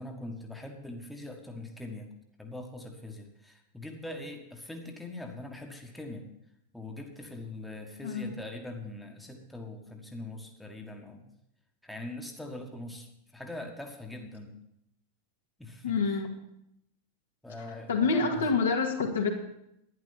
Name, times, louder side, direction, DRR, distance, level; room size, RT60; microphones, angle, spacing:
voice 1, 0.0-6.3 6.7-11.3 11.8-14.6 15.6-16.3 17.4-18.5, left 2 dB, 5° left, 2 dB, 1.6 m, -42 dB
voice 2, 15.8-16.3 17.9-19.3, left 4 dB, 65° left, 1 dB, 2.1 m, -27 dB
11.5 x 10.5 x 5.7 m, 0.80 s
figure-of-eight pair, 90°, 0 cm